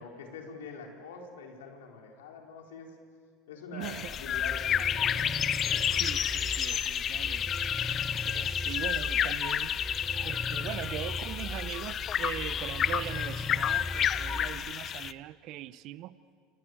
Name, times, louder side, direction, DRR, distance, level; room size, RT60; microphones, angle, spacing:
voice 1, 0.0-2.9 3.5-5.8, left 5 dB, 85° left, 2 dB, 4.4 m, -45 dB
voice 2, 3.7-4.1 5.8-7.6 8.3-9.8 10.2-16.2, right 14 dB, 55° right, 16 dB, 0.9 m, -41 dB
sound 1, 3.8-15.1, left 9 dB, 40° left, 0.8 m, -30 dB
sound 2, 4.1-14.7, equal, 5° right, 1.2 m, -39 dB
28.0 x 26.5 x 8.0 m, 2.2 s
supercardioid pair, 105°, 0 cm